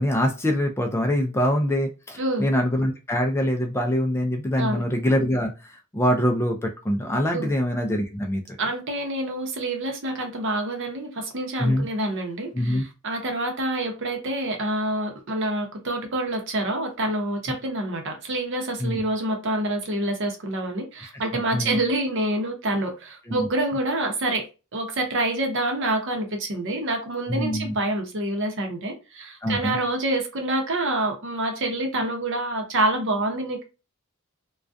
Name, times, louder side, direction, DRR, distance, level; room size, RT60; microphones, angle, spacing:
voice 1, 0.0-8.4 11.6-11.9 12.5-12.8 18.8-19.0 21.3-21.8 23.3-23.5 27.3-27.8 29.4-29.8, equal, 10° left, 0.3 m, -24 dB
voice 2, 2.2-2.5 4.6-4.8 7.3-7.5 8.6-24.5 24.7-33.6, right 1 dB, 60° right, 0.7 m, -27 dB
2.3 x 2.2 x 2.5 m
head